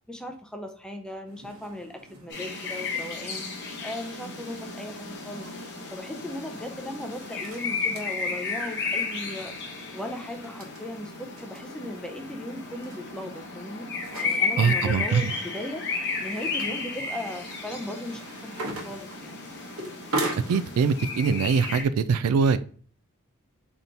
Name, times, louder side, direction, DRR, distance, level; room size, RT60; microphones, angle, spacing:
voice 1, 0.1-5.5 5.9-9.5 9.9-13.9 14.2-15.8 16.2-19.3, left 1 dB, 5° left, 0.5 m, -37 dB
sound 1, 1.3-20.8, right 2 dB, 65° right, 1.1 m, -41 dB
sound 2, 2.3-21.8, left 4 dB, 55° left, 1.0 m, -33 dB
voice 2, 14.6-15.3 20.5-22.6, right 5 dB, 85° right, 0.4 m, -23 dB
4.0 x 3.5 x 2.8 m
head